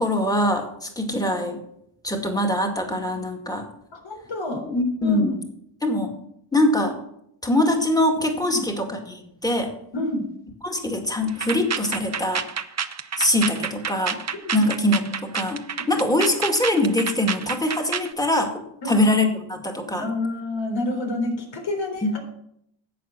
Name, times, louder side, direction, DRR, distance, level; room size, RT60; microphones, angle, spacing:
voice 1, 0.0-1.6 2.0-3.6 4.6-5.3 5.8-6.1 6.5-7.0 7.4-9.7 10.6-12.5 13.2-14.2 14.5-15.6 15.9-20.1 22.0-22.1, left 1 dB, 10° left, 3 dB, 2.2 m, -23 dB
voice 2, 3.9-4.6 5.0-5.3 8.5-8.6 9.9-10.2 14.4-14.5 18.8-19.0 20.0-22.3, left 2 dB, 65° left, 2 dB, 3.9 m, -28 dB
sound 1, 11.3-18.1, right 6 dB, 35° right, 0.8 m, -29 dB
11.0 x 8.0 x 6.1 m, 0.74 s
cardioid pair, 85°, 48 cm